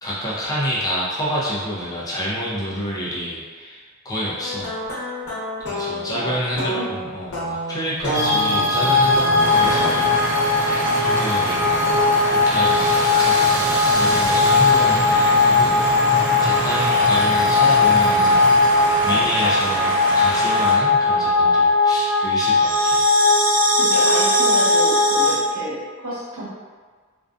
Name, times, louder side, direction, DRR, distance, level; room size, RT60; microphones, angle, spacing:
voice 1, 0.0-4.7 5.6-12.0 12.3-15.9 16.4-23.0, equal, 15° left, -7 dB, 0.4 m, -28 dB
sound 1, 4.4-9.9, equal, 80° left, 0.8 m, -29 dB
voice 2, 6.1-6.9 23.7-26.5, right 1 dB, 75° right, -10 dB, 1.0 m, -30 dB
sound 2, 8.1-25.4, left 3 dB, 55° right, 0.7 m, -18 dB
sound 3, 9.4-20.8, equal, 20° right, 1.0 m, -27 dB
2.5 x 2.2 x 2.4 m, 1.5 s
head